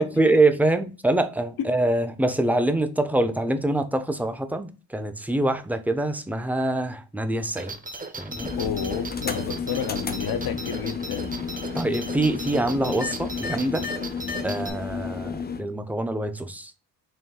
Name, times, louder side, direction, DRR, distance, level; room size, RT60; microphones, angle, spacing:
voice 1, 0.0-7.7 8.2-8.5 11.7-13.8 14.4-16.7, right 2 dB, 5° right, 0.7 m, -24 dB
sound 1, 7.6-14.7, right 3 dB, 20° right, 0.9 m, -37 dB
sound 2, 8.3-15.6, left 5 dB, 25° left, 0.7 m, -32 dB
voice 2, 8.6-11.3, left 8 dB, 70° left, 0.7 m, -30 dB
4.4 x 2.6 x 3.8 m
supercardioid pair, 60°, 37 cm